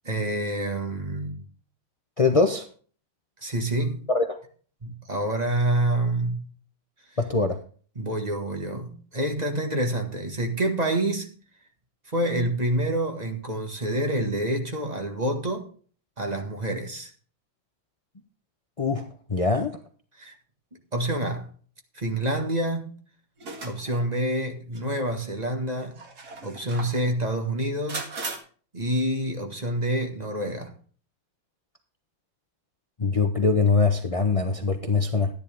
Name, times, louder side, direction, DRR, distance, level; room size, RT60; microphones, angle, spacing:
voice 1, 0.0-1.4 3.4-4.0 4.8-6.5 7.9-11.3 12.1-15.7 16.2-17.1 20.1-20.3 20.9-21.5 21.9-22.9 23.6-25.9 26.4-28.0 28.7-30.7, right 1 dB, 20° right, 1.7 m, -27 dB
voice 2, 2.2-2.7 4.1-4.3 7.2-7.6 18.8-19.0 19.3-19.8 33.0-35.3, left 4 dB, 55° left, 0.3 m, -22 dB
sound 1, 23.4-24.0 24.7-24.8 25.8-27.0 27.9-28.4, right 3 dB, 50° right, 2.5 m, -36 dB
13.5 x 10.0 x 3.5 m
omnidirectional pair, 2.1 m